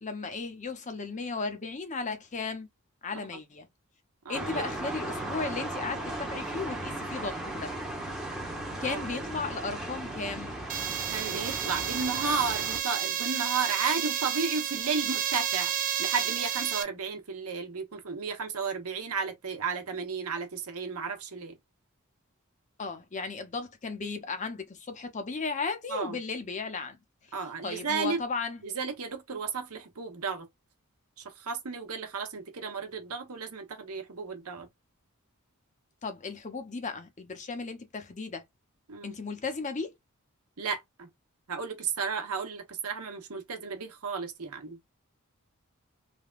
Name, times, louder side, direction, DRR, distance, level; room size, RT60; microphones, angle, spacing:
voice 1, 0.0-2.7 3.0-3.7 4.3-7.7 8.8-10.5 22.8-27.0 27.6-28.6 36.0-38.4 39.0-39.9, left 4 dB, 35° left, 0.6 m, -35 dB
voice 2, 4.2-4.7 8.8-9.1 11.1-15.7 16.0-21.6 25.9-26.2 27.3-28.2 28.6-30.5 31.2-34.7 38.9-39.1 40.6-41.1 41.5-44.8, right 5 dB, 80° right, 0.9 m, -33 dB
sound 1, 4.3-12.8, right 1 dB, ahead, 0.8 m, -36 dB
sound 2, 10.7-16.8, right 10 dB, 40° right, 0.4 m, -31 dB
3.3 x 2.2 x 2.3 m
head